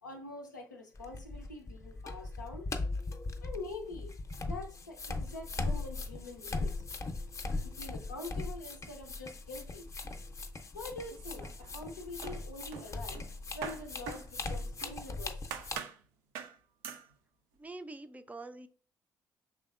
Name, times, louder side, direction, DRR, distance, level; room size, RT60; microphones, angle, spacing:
voice 1, 0.0-2.8 3.4-4.1 4.4-6.8 7.6-9.9 10.7-13.2 13.5-15.6, left 2 dB, 90° left, 0.4 m, -45 dB
sound 1, 1.0-15.8, left 3 dB, 30° left, 0.6 m, -39 dB
sound 2, 11.1-11.9 12.2-15.0 15.5-16.0 16.3-16.6 16.8-17.1, right 8 dB, 70° right, 0.4 m, -44 dB
voice 2, 17.6-18.7, right 2 dB, 15° right, 0.4 m, -45 dB
5.4 x 3.4 x 2.3 m
figure-of-eight pair, 45°, 10 cm